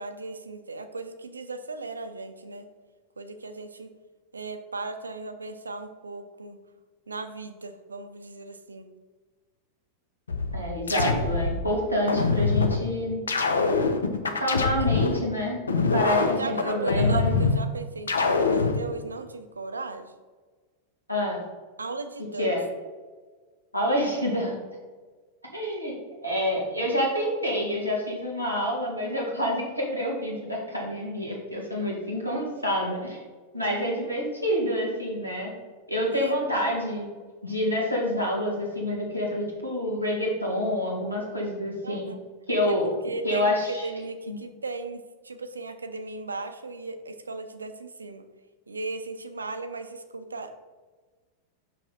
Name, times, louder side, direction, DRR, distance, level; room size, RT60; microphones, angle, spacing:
voice 1, 0.0-2.7 3.2-3.9 4.3-6.6 7.1-8.9 14.8-14.9 16.1-20.1 21.8-22.5 36.1-36.4 41.8-42.2 42.7-48.2 48.7-50.6, right 3 dB, 75° right, 9 dB, 0.5 m, -37 dB
sound 1, 10.3-11.6 12.1-12.8 13.3-15.2 15.7-17.6 18.1-18.8, left 4 dB, 70° left, 0.6 m, -24 dB
voice 2, 10.5-13.2 14.3-15.6 15.9-17.3 21.1-21.4 22.4-22.6 23.7-24.6 25.5-25.9 26.2-33.2 33.5-35.5 35.9-37.1 37.4-42.1 42.5-42.9 43.2-43.9 44.3-44.4, equal, 90° left, -3 dB, 1.8 m, -27 dB
5.9 x 5.6 x 4.1 m, 1.4 s
figure-of-eight pair, 90°, 0 cm